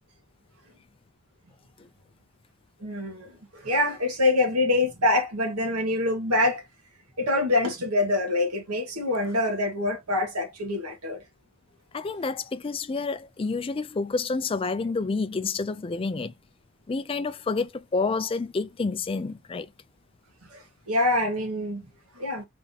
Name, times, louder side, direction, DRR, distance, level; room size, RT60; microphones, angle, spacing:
voice 1, 2.8-6.6 7.2-11.2 20.5-21.8 22.2-22.5, left 2 dB, 85° right, 1.4 m, -25 dB
voice 2, 11.9-16.3 16.9-19.7, left 4 dB, 25° left, 0.3 m, -29 dB
3.5 x 2.7 x 3.8 m
head